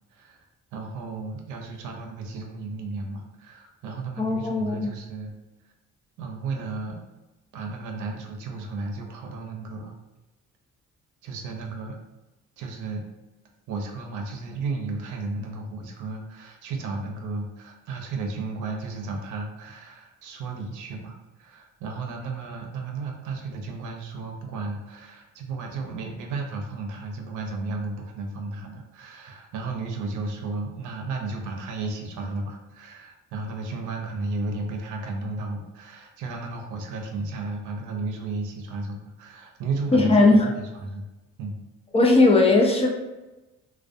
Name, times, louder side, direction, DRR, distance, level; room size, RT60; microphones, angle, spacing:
voice 1, 0.1-0.4 0.7-5.3 5.6-5.7 6.2-7.1 7.5-9.9 11.2-12.0 12.6-13.1 13.7-41.0 41.4-41.6, right 3 dB, 85° right, 2 dB, 0.5 m, -33 dB
voice 2, 4.2-4.9 39.9-40.5 41.9-42.9, left 2 dB, 20° left, 1 dB, 0.4 m, -18 dB
2.4 x 2.2 x 2.5 m, 1.1 s
cardioid pair, 90°, 30 cm